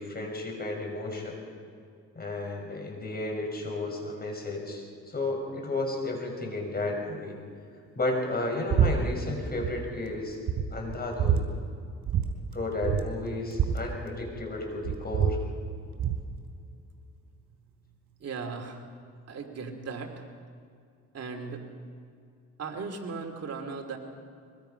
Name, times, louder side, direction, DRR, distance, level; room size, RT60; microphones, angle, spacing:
voice 1, 0.0-1.5 2.1-7.4 8.0-10.4 10.7-11.5 12.5-15.4, left 2 dB, 30° left, 1 dB, 6.0 m, -33 dB
sound 1, 8.7-8.9 9.2-9.7 10.1-10.2 10.5-11.4 12.1-12.3 12.5-12.6 12.8-14.5 14.8-16.2, right 8 dB, 70° right, 3.7 m, -26 dB
voice 2, 18.2-18.8 19.3-20.1 21.1-21.6 22.6-24.0, right 4 dB, 55° right, 4 dB, 2.6 m, -37 dB
23.0 x 22.0 x 5.8 m, 2.3 s
cardioid pair, 90°, 30 cm